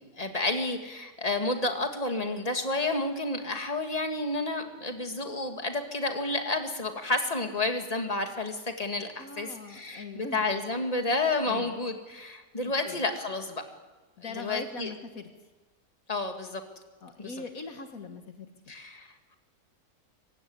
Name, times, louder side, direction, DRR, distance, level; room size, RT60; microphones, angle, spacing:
voice 1, 0.0-13.6 14.4-14.9 16.1-16.6 17.2-17.3 18.7-19.4, left 2 dB, 25° left, 5 dB, 2.4 m, -30 dB
voice 2, 9.2-10.5 10.7-10.8 11.5-11.8 12.6-13.0 14.2-15.3 17.0-18.7, left 4 dB, 65° left, 6 dB, 1.9 m, -42 dB
24.5 x 16.5 x 9.7 m, 1.3 s
omnidirectional pair, 1.6 m